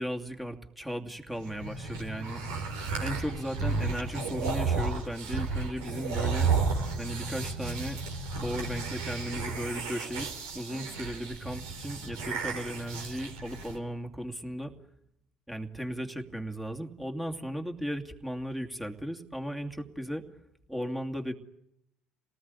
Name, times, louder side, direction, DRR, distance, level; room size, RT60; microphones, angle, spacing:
voice 1, 0.0-2.4 3.0-6.5 7.0-8.0 8.4-10.3 10.5-14.7 15.5-20.2 20.7-21.3, equal, 5° right, 4 dB, 2.6 m, -36 dB
sound 1, 1.4-13.8, right 4 dB, 75° right, 4.0 m, -33 dB
27.0 x 19.0 x 9.7 m, 0.81 s
hypercardioid pair, 65°, 3 cm